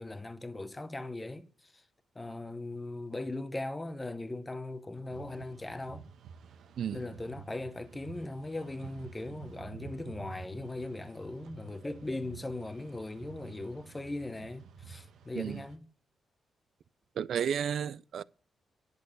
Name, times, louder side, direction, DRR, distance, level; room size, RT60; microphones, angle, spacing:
voice 1, 0.0-1.8 2.1-6.0 6.9-15.9, left 2 dB, 15° left, 0.8 m, -39 dB
sound 1, 5.1-15.8, right 7 dB, 85° right, 1.1 m, -50 dB
voice 2, 17.2-18.2, right 8 dB, 70° right, 0.4 m, -32 dB
10.5 x 6.7 x 5.2 m
cardioid pair, 120°, 0 cm